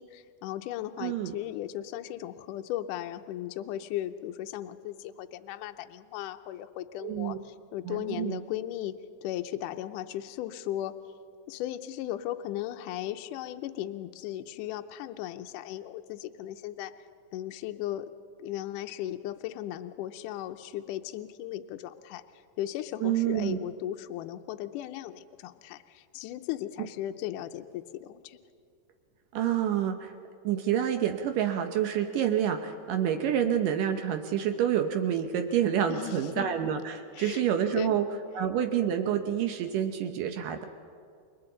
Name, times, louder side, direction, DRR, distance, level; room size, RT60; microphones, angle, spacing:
voice 1, 0.0-11.0 11.5-16.9 17.3-18.1 18.4-22.2 22.6-28.4 35.9-36.6 37.2-37.5 37.7-38.0, left 13 dB, 80° left, 8 dB, 1.9 m, -37 dB
voice 2, 1.0-1.4 7.0-7.4 7.9-8.4 23.0-23.7 29.3-30.1 30.4-38.0 38.3-40.6, right 9 dB, 75° right, 6 dB, 2.2 m, -28 dB
29.0 x 23.0 x 3.9 m, 2.3 s
omnidirectional pair, 4.3 m